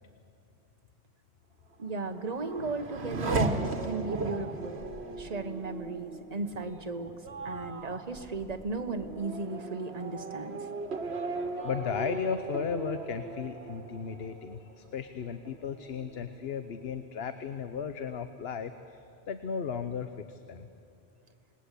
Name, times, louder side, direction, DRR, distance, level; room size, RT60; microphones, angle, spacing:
voice 1, 1.8-4.9 5.2-7.1 7.4-10.7, right 3 dB, 40° right, 6 dB, 1.4 m, -36 dB
Race car auto racing / Accelerating revving vroom, 1.8-15.1 15.5-16.2, right 3 dB, 80° right, 1.7 m, -37 dB
voice 2, 11.3-20.7, left 6 dB, 70° left, 10 dB, 1.1 m, -35 dB
28.0 x 20.0 x 8.3 m, 2.7 s
omnidirectional pair, 1.1 m